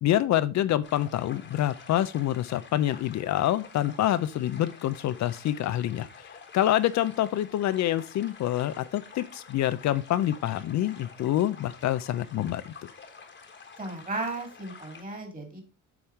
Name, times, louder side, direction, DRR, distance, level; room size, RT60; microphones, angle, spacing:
voice 1, 0.0-6.1 6.5-12.7, left 12 dB, 65° left, 0.5 m, -26 dB
sound 1, 0.8-15.0, left 5 dB, 40° left, 1.3 m, -49 dB
voice 2, 13.8-15.6, right 2 dB, 30° right, 2.4 m, -35 dB
7.0 x 3.6 x 4.4 m
cardioid pair, 90°, 30 cm